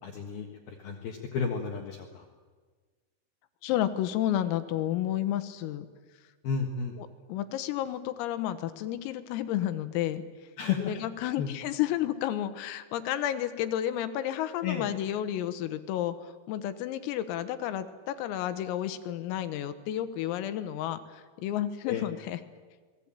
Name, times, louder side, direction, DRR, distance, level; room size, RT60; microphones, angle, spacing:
voice 1, 0.0-2.3 6.4-6.9 10.6-10.9 11.4-11.5 14.6-14.9 21.9-22.1, left 6 dB, 60° left, 2 dB, 2.8 m, -32 dB
voice 2, 3.6-5.9 7.0-10.2 10.8-22.4, left 12 dB, 85° left, 10 dB, 3.9 m, -31 dB
28.5 x 20.0 x 9.0 m, 1.4 s
omnidirectional pair, 6.0 m